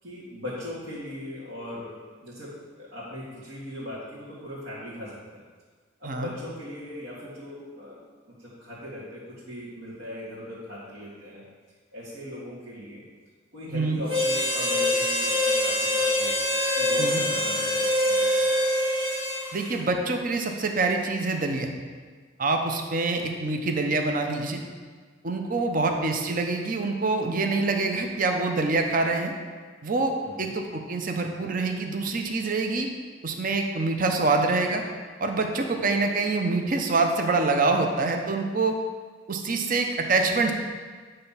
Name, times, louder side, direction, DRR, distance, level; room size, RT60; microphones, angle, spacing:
voice 1, 0.0-5.2 6.0-8.0 8.3-11.4 11.9-13.0 13.5-16.3 16.8-18.4 30.2-30.5 35.7-36.0, left 1 dB, 70° right, -10 dB, 1.9 m, -39 dB
voice 2, 13.7-14.0 17.0-17.2 19.5-21.7 22.4-24.6 25.2-29.3 29.8-32.9 33.2-34.8 35.2-38.8 39.3-40.5, right 3 dB, 45° right, 3 dB, 0.6 m, -25 dB
Harmonica, 14.1-19.7, left 1 dB, 25° right, 1.6 m, -24 dB
9.1 x 3.3 x 5.6 m, 1.5 s
head